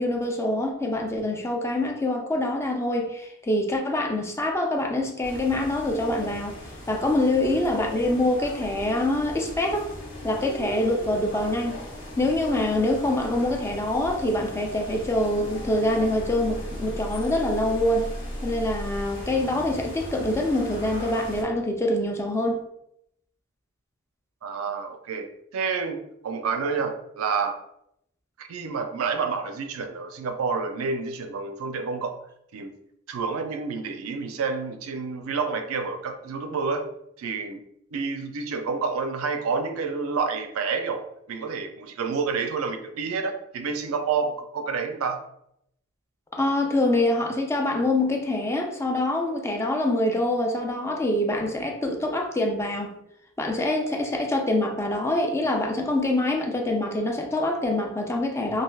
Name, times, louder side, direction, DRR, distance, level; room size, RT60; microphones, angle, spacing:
voice 1, 0.0-6.6 6.9-9.9 10.2-11.8 12.2-18.1 18.4-22.6 46.3-52.9 53.4-58.6, left 1 dB, 15° left, 1 dB, 0.4 m, -25 dB
sound 1, 5.2-21.4, equal, 65° left, 1.0 m, -37 dB
voice 2, 24.4-25.3 25.5-27.6 28.4-32.2 32.5-32.7 33.1-36.8 37.2-37.6 37.9-45.2, right 5 dB, 90° right, 7 dB, 0.4 m, -29 dB
3.2 x 2.5 x 2.3 m, 0.76 s
head